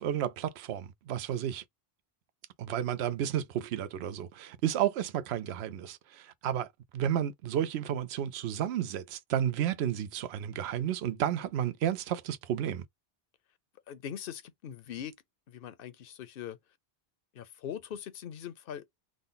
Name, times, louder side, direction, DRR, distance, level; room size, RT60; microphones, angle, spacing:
voice 1, 0.0-1.6 2.6-6.7 6.9-12.8, right 10 dB, 75° right, 0.8 m, -32 dB
voice 2, 13.9-15.1 15.5-16.6 17.3-18.8, left 9 dB, 65° left, 0.8 m, -41 dB
3.6 x 2.1 x 3.8 m
omnidirectional pair, 1.1 m